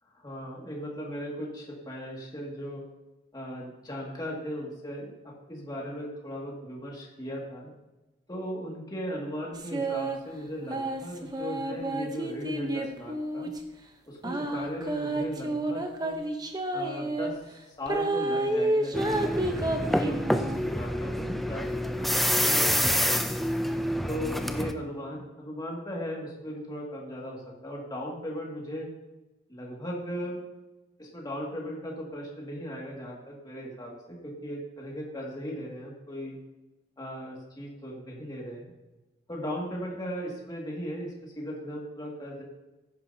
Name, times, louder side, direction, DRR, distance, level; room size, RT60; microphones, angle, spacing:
voice 1, 0.2-2.8 3.3-7.7 8.3-13.5 14.1-16.2 16.7-17.4 17.8-19.3 19.8-21.7 22.0-23.3 24.0-28.9 29.5-30.4 31.0-36.4 37.0-38.6 39.3-42.4, equal, 25° left, -3 dB, 2.1 m, -37 dB
sound 1, 9.5-10.2 10.7-13.6 14.2-17.3 17.9-20.6, right 1 dB, 20° right, 0.9 m, -30 dB
sound 2, 18.9-24.7, equal, ahead, 0.4 m, -27 dB
15.0 x 10.0 x 2.8 m, 1.1 s
head